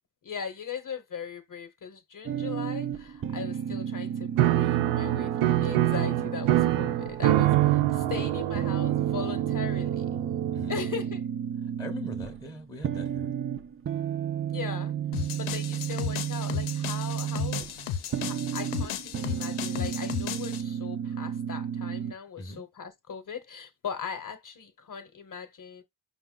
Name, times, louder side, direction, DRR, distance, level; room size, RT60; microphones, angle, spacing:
voice 1, 0.2-10.2 10.7-11.2 14.5-14.9 15.4-17.9 18.2-25.8, left 7 dB, 40° left, 0.9 m, -39 dB
sound 1, 2.3-22.1, right 8 dB, 30° right, 0.4 m, -33 dB
Piano, 4.4-11.2, right 15 dB, 85° right, 0.5 m, -25 dB
voice 2, 11.8-13.3 22.4-22.6, left 1 dB, 10° left, 0.6 m, -41 dB
sound 2, 15.1-20.6, left 9 dB, 85° left, 0.7 m, -35 dB
5.3 x 2.2 x 3.7 m
cardioid pair, 130°, 49 cm